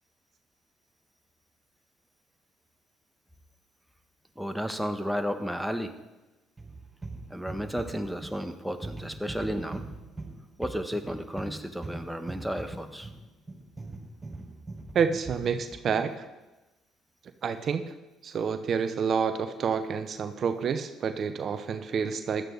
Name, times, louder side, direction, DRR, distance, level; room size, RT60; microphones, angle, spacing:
voice 1, 4.4-5.9 7.3-9.8 10.6-13.1, equal, ahead, 7 dB, 1.4 m, -33 dB
sound 1, 6.6-16.1, right 2 dB, 20° right, 5.2 m, -41 dB
voice 2, 14.9-16.2 17.4-17.8 18.2-22.4, right 6 dB, 50° right, 10 dB, 0.9 m, -28 dB
15.5 x 11.5 x 4.0 m, 1.1 s
hypercardioid pair, 55°, 0 cm